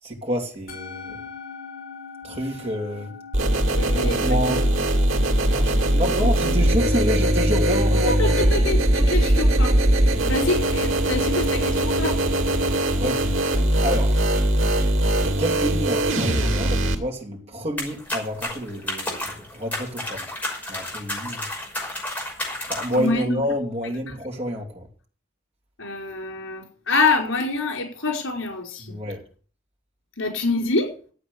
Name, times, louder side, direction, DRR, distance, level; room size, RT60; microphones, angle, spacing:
voice 1, 0.0-1.2 2.2-3.1 3.9-4.7 5.5-8.4 13.0-13.3 13.8-14.2 15.4-20.3 20.7-21.5 22.7-24.9 28.8-29.2, equal, 30° right, 3.2 m, -28 dB
Musical instrument, 0.7-19.2, left 4 dB, 50° left, 5.9 m, -45 dB
sound 1, 3.3-16.9, right 1 dB, 80° right, 2.5 m, -20 dB
voice 2, 3.7-4.2 4.5-4.6 5.9-6.1 6.4-6.5 8.0-9.8 10.2-12.2 12.5-12.6 22.9-23.4 24.1-24.2 25.8-29.0 30.2-30.9, left 3 dB, 85° left, 5.0 m, -26 dB
sound 2, 17.8-23.1, left 1 dB, 10° left, 5.7 m, -32 dB
13.0 x 8.7 x 6.6 m
head